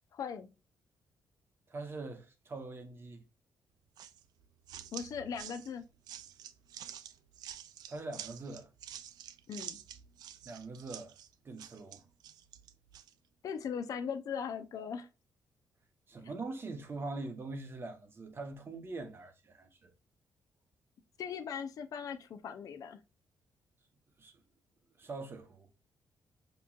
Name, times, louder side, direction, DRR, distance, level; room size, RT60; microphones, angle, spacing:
voice 1, 0.1-0.5 4.9-5.8 9.5-9.8 13.4-15.1 21.2-23.0, left 7 dB, 60° left, 0.5 m, -39 dB
voice 2, 1.7-3.2 7.9-8.7 10.4-11.1 11.4-12.0 16.1-19.9 24.2-24.3 25.0-25.7, right 3 dB, 35° right, 1.0 m, -43 dB
sound 1, 4.0-13.1, right 10 dB, 80° right, 0.4 m, -48 dB
5.2 x 3.0 x 2.4 m
cardioid pair, 105°, 7 cm